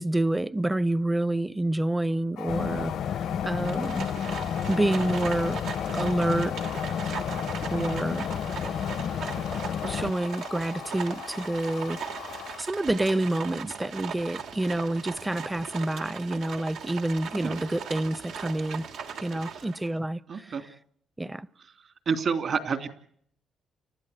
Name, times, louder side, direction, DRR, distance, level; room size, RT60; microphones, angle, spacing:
voice 1, 0.0-2.9 3.4-4.1 4.7-5.6 5.9-6.6 7.7-8.3 9.9-12.0 12.6-18.8 19.2-20.5 21.2-21.5, right 1 dB, 10° right, 0.8 m, -28 dB
sound 1, 2.4-12.6, left 11 dB, 85° left, 1.0 m, -40 dB
sound 2, 2.5-10.1, left 8 dB, 65° left, 0.8 m, -31 dB
Livestock farm animals working animals, 3.6-19.9, right 6 dB, 85° right, 2.8 m, -39 dB
voice 2, 20.3-20.6 22.1-22.9, right 5 dB, 55° right, 3.0 m, -28 dB
30.0 x 12.5 x 8.2 m
cardioid pair, 90°, 0 cm